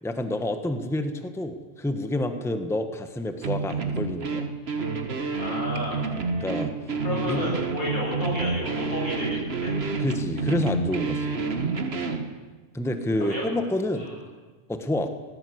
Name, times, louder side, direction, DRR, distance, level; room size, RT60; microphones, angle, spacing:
voice 1, 0.0-4.5 6.4-6.7 7.3-7.4 10.0-11.4 12.7-14.1 14.7-15.1, left 1 dB, ahead, 8 dB, 1.2 m, -28 dB
sound 1, 3.4-12.3, right 4 dB, 45° right, 1.7 m, -29 dB
voice 2, 5.4-6.0 7.0-9.7 13.2-13.4 13.9-14.1, left 1 dB, 85° left, -3 dB, 8.3 m, -31 dB
18.5 x 18.5 x 8.0 m, 1.3 s
omnidirectional pair, 1.5 m